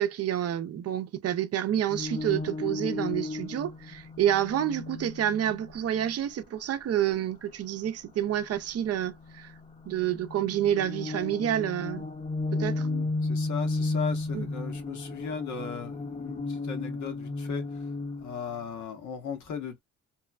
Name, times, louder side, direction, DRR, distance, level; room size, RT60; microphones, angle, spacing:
voice 1, 0.0-9.5 9.9-12.1 12.5-12.9 14.3-14.4, right 10 dB, 55° right, 0.5 m, -28 dB
sound 1, 1.9-6.1 9.1-18.4, left 2 dB, 25° left, 0.7 m, -34 dB
voice 2, 12.7-17.9 18.2-19.8, left 6 dB, 70° left, 1.2 m, -37 dB
3.0 x 2.1 x 2.4 m
cardioid pair, 90°, 30 cm